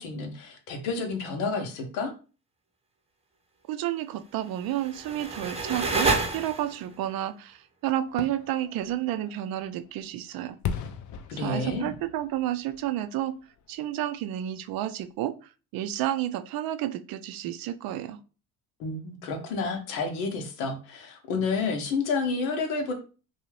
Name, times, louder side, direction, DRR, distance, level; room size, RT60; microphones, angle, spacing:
voice 1, 0.0-2.1 11.3-11.9 18.8-22.9, left 4 dB, 90° left, 4 dB, 0.8 m, -30 dB
voice 2, 3.7-10.6 11.3-13.4 13.7-15.3 15.7-18.2, right 12 dB, 60° right, 10 dB, 0.5 m, -31 dB
sound 1, 4.6-6.9, right 3 dB, 15° right, 0.7 m, -29 dB
Fireworks, 8.1-13.9 14.3-14.4, left 7 dB, 50° left, 0.5 m, -39 dB
2.7 x 2.3 x 3.1 m, 0.35 s
supercardioid pair, 70°, 41 cm